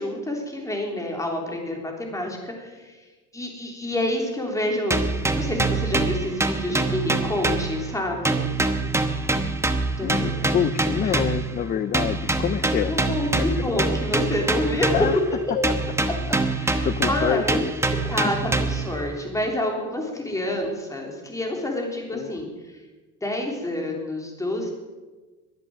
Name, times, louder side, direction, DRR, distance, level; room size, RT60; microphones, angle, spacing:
voice 1, 0.0-3.0 3.3-8.4 10.0-10.5 11.0-11.2 12.8-15.2 16.4-17.6 18.1-22.8 23.2-24.7, left 1 dB, 10° left, 1 dB, 3.4 m, -28 dB
sound 1, 4.9-8.0 8.2-11.5 11.9-15.3 15.6-18.9, right 2 dB, 10° right, 1.0 m, -25 dB
voice 2, 10.0-12.9 13.2-13.6 14.9-15.2 16.3-17.7 22.1-22.4, left 9 dB, 30° left, 13 dB, 0.5 m, -27 dB
22.5 x 8.2 x 7.7 m, 1.3 s
cardioid pair, 155°, 33 cm